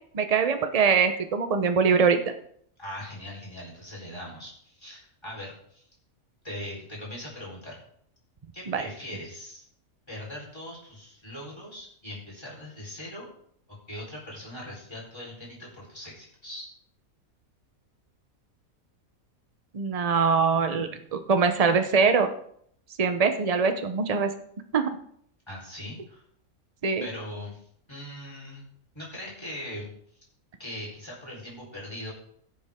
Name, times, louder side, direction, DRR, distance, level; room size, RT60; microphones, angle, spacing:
voice 1, 0.1-2.2 8.7-8.8 19.7-22.3 23.0-24.3 24.7-24.9 26.8-27.1, right 5 dB, 35° right, 8 dB, 0.8 m, -23 dB
voice 2, 2.8-5.8 6.4-7.8 8.5-9.6 10.1-13.3 13.9-16.7 25.5-26.2 27.0-27.6 27.9-28.6 28.9-29.9 30.6-32.1, left 1 dB, 20° left, -5 dB, 4.3 m, -40 dB
16.0 x 7.0 x 3.6 m, 0.66 s
omnidirectional pair, 1.5 m